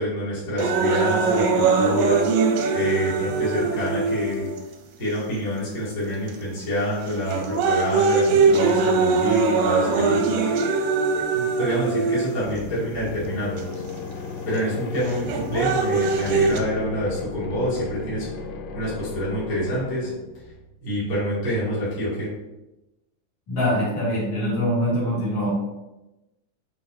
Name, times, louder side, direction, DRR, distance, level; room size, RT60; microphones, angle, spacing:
voice 1, 0.0-2.3 2.7-4.5 5.0-10.5 11.2-13.8 14.4-18.3 18.7-20.1 20.8-22.3, equal, 25° left, -9 dB, 2.2 m, -27 dB
sound 1, 0.6-4.6 5.3-5.4 6.3-6.6 7.1-12.6 13.6-13.7 15.1-16.6, right 4 dB, 75° right, 2.1 m, -21 dB
sound 2, 12.4-20.7, left 4 dB, 85° left, 1.9 m, -35 dB
voice 2, 23.5-25.5, equal, 50° left, -7 dB, 3.5 m, -23 dB
6.9 x 5.8 x 2.8 m, 0.98 s
omnidirectional pair, 4.7 m